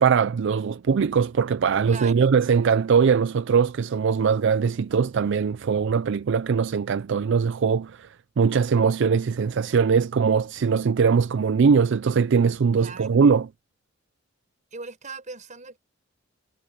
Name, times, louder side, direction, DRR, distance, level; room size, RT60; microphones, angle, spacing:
voice 1, 0.0-8.1 8.4-13.5, right 6 dB, 65° right, 0.4 m, -21 dB
voice 2, 1.9-2.4 12.8-13.2 14.7-15.8, right 4 dB, 40° right, 6.5 m, -39 dB
head